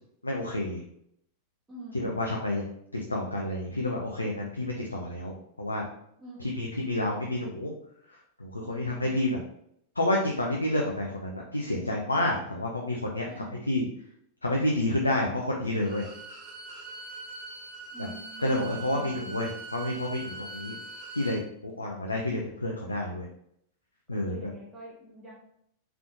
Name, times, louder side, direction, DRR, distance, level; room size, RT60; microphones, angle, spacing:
voice 1, 0.2-0.8 1.9-2.6 2.9-5.8 6.6-7.7 8.1-9.4 10.0-13.8 14.4-16.0 18.0-18.1 18.4-20.7 21.1-23.3 24.1-24.4, left 1 dB, 80° left, -1 dB, 0.5 m, -29 dB
voice 2, 1.7-2.3 6.2-6.9 8.6-9.2 13.3-13.7 17.9-19.4 24.1-25.4, right 1 dB, 15° right, -6 dB, 1.0 m, -46 dB
Bowed string instrument, 15.7-21.4, right 3 dB, 35° right, 0.9 m, -42 dB
3.7 x 3.5 x 2.4 m, 0.72 s
figure-of-eight pair, 90°, 0 cm